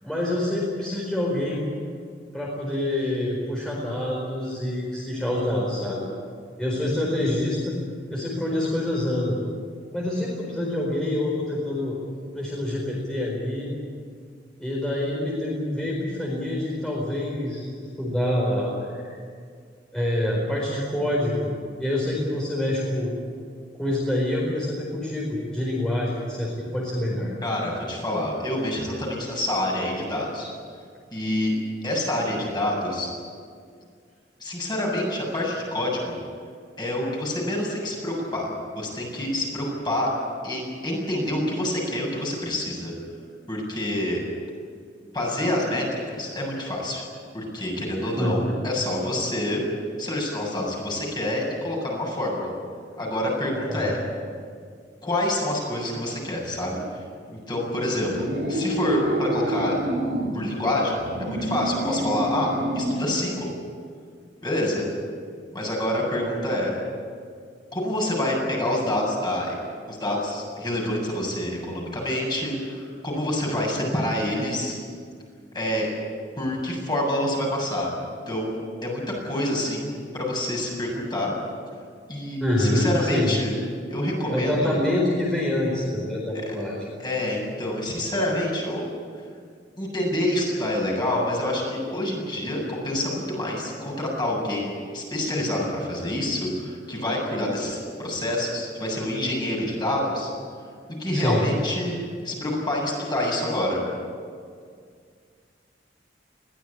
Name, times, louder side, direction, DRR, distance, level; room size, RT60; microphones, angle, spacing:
voice 1, 0.0-1.7 2.3-6.1 6.6-7.8 8.1-9.4 9.9-12.0 12.3-13.7 14.6-19.0 19.9-21.5 21.8-23.1 23.8-27.3 48.1-48.6 53.7-54.0 82.4-83.3 84.3-86.9 101.1-101.5, left 1 dB, 5° left, -5 dB, 4.5 m, -26 dB
voice 2, 27.4-30.5 31.1-31.5 31.8-33.1 34.4-36.1 36.8-38.5 38.7-40.1 40.4-42.9 43.5-44.2 45.1-47.0 47.3-49.6 50.0-52.5 53.0-54.0 55.0-57.0 57.3-59.8 60.3-63.5 64.4-64.9 65.5-66.7 67.7-69.5 69.9-74.8 75.5-75.9 76.4-77.9 78.3-81.3 82.1-83.6 83.9-84.8 86.3-86.6 87.0-88.9 89.8-100.3 101.0-102.0 102.2-103.8, left 1 dB, 25° left, -2 dB, 7.4 m, -27 dB
sound 1, 58.0-60.3 60.9-63.1, right 1 dB, 85° right, 5.6 m, -28 dB
22.0 x 17.0 x 10.0 m, 2.1 s
head